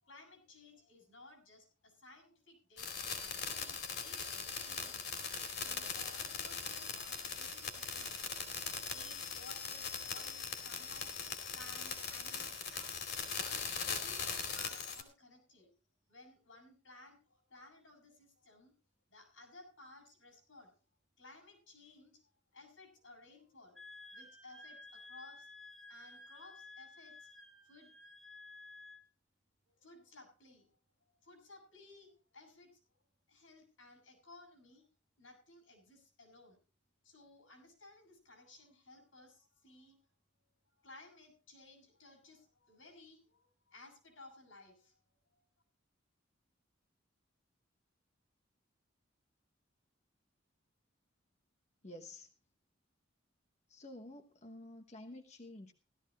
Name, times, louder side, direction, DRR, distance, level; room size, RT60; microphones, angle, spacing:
voice 1, 0.0-3.2 3.5-5.2 5.6-8.2 8.9-15.7 16.1-18.7 19.1-20.8 21.2-22.2 22.5-23.8 24.1-25.5 25.9-27.3 27.6-27.9 29.6-32.8 33.3-34.8 35.2-36.6 37.0-40.0 40.8-45.0 45.3-45.4, left 2 dB, 90° left, 5 dB, 6.3 m, -58 dB
sound 1, 2.8-15.0, left 5 dB, 60° left, 2.8 m, -40 dB
Wind instrument woodwind instrument, 23.8-29.1, left 2 dB, ahead, 1.4 m, -54 dB
voice 2, 51.8-52.3 53.7-55.7, left 1 dB, 35° left, 5 dB, 1.1 m, -50 dB
16.5 x 13.5 x 3.0 m, 0.33 s
head